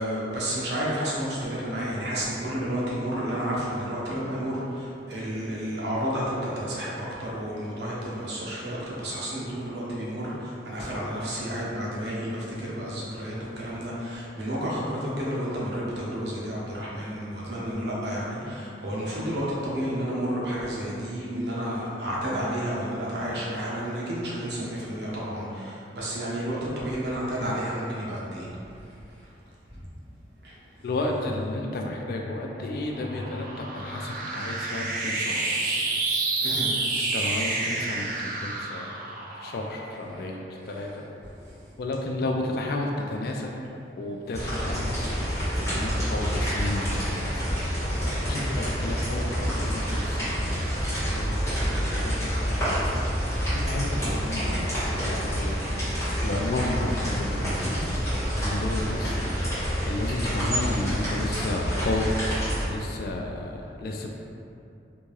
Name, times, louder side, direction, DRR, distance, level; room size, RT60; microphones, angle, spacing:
voice 1, 0.0-28.5 30.4-30.5 35.8-35.9 36.4-36.7 38.1-38.2 40.7-40.9 48.2-48.5, equal, 70° right, -6 dB, 0.8 m, -31 dB
voice 2, 30.8-35.5 37.0-38.9 39.4-41.0 41.8-43.5 44.0-45.2 45.6-47.4 48.2-50.7 51.1-53.0 53.4-55.7 56.2-58.0 58.4-62.1 62.6-64.3, left 2 dB, 55° left, 1 dB, 0.3 m, -32 dB
sound 1, 32.0-40.7, right 3 dB, 50° right, 0.4 m, -30 dB
sound 2, 44.3-62.7, equal, 15° left, 1.4 m, -28 dB
3.4 x 2.6 x 3.2 m, 2.6 s
head